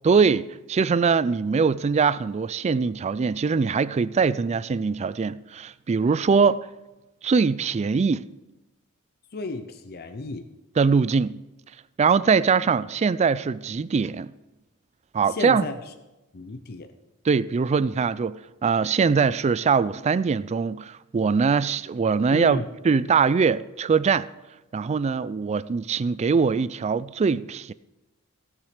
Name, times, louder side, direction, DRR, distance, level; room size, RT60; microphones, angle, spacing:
voice 1, 0.0-6.6 7.2-8.2 10.8-11.4 12.0-14.3 15.1-15.7 17.2-24.3 24.7-27.7, right 5 dB, 30° right, 0.3 m, -22 dB
voice 2, 9.3-10.5 15.3-15.7 16.3-16.9 22.3-22.7, left 3 dB, 45° left, 0.7 m, -33 dB
16.5 x 7.3 x 5.0 m
head